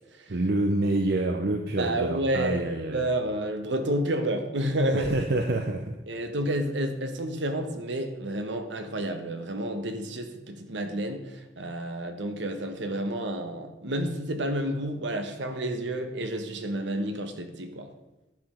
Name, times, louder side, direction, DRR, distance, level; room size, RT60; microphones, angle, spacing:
voice 1, 0.3-3.0 4.9-6.0, right 2 dB, 60° right, 4 dB, 0.7 m, -27 dB
voice 2, 1.8-2.6 2.9-5.1 6.1-17.9, right 1 dB, 75° right, 6 dB, 1.2 m, -30 dB
10.5 x 5.2 x 5.7 m, 0.99 s
head